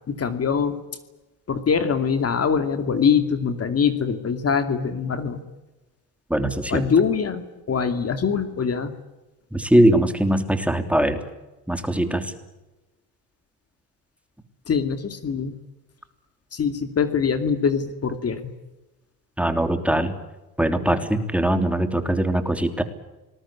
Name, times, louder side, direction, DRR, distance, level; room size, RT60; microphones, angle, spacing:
voice 1, 0.1-0.8 1.5-5.4 6.7-8.9 14.7-15.5 16.5-18.5, left 6 dB, 40° left, 9 dB, 2.6 m, -23 dB
voice 2, 6.3-6.9 9.5-11.2 11.7-12.3 19.4-20.1 20.6-22.8, right 1 dB, 5° right, 7 dB, 3.3 m, -21 dB
26.5 x 20.5 x 8.7 m, 1.1 s
cardioid pair, 95°, 38 cm